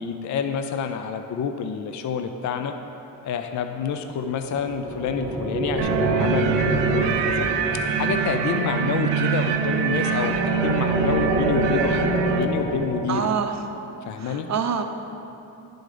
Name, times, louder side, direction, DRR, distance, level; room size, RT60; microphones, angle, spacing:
voice 1, 0.0-2.7 3.2-7.5 8.0-13.2 14.0-14.5, left 6 dB, 45° left, 7 dB, 0.5 m, -28 dB
sound 1, 4.2-13.1, right 1 dB, 5° right, 1.2 m, -27 dB
sound 2, 5.8-12.5, right 7 dB, 80° right, 0.6 m, -24 dB
voice 2, 13.1-13.6 14.2-14.8, right 6 dB, 40° right, 6 dB, 0.7 m, -26 dB
10.5 x 3.9 x 4.9 m, 2.8 s
supercardioid pair, 70°, 42 cm